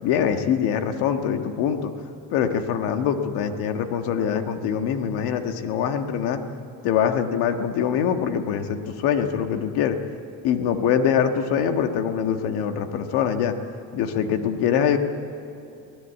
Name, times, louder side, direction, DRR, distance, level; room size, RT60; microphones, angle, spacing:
voice 1, 0.0-1.9 2.3-6.4 6.8-10.0 10.4-13.5 13.9-15.0, left 8 dB, 90° left, 6 dB, 1.7 m, -23 dB
23.0 x 17.5 x 8.3 m, 2.7 s
cardioid pair, 135°, 38 cm